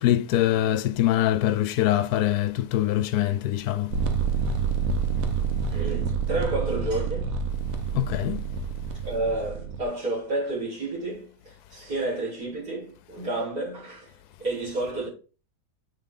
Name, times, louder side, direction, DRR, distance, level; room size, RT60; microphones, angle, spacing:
voice 1, 0.0-3.9 7.9-8.4, left 13 dB, 75° left, 1.1 m, -23 dB
sound 1, 3.9-9.8, right 6 dB, 60° right, 1.3 m, -28 dB
voice 2, 5.7-7.5 9.0-14.1 14.4-15.1, right 2 dB, 80° right, 5.4 m, -30 dB
7.9 x 5.3 x 4.0 m
omnidirectional pair, 1.8 m